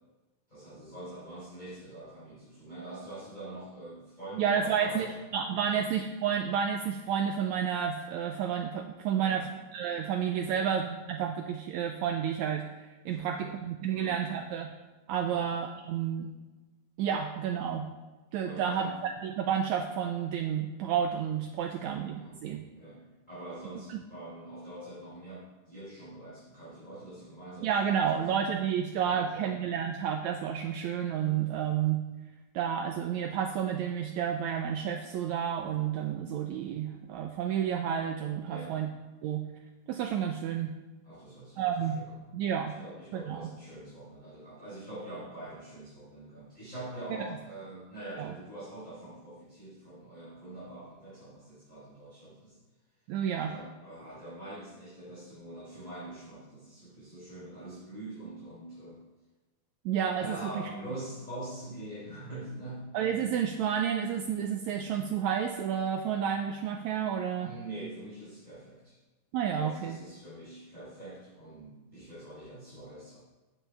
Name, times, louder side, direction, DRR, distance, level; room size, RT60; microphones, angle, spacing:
voice 1, 0.5-5.2 5.6-5.8 9.2-9.5 10.4-10.7 11.1-11.2 13.1-13.5 13.9-14.2 15.3-15.5 18.4-19.0 21.8-22.4 22.7-28.4 29.1-29.5 38.5-38.8 41.0-41.7 41.9-42.1 42.7-52.6 53.3-59.0 60.2-62.9 67.4-69.0 69.5-73.2, right 1 dB, 15° left, -11 dB, 3.6 m, -44 dB
voice 2, 4.4-5.1 5.3-14.7 15.1-16.3 17.0-17.9 18.3-22.7 23.9-24.0 27.6-32.0 32.5-38.9 39.2-39.5 39.9-40.7 41.6-42.0 42.3-42.8 43.1-43.5 48.2-48.3 53.1-53.5 59.9-60.3 60.6-60.7 62.9-67.5 69.3-70.0, right 8 dB, 90° right, 4 dB, 1.6 m, -30 dB
10.0 x 9.1 x 3.4 m, 1.2 s
omnidirectional pair, 3.8 m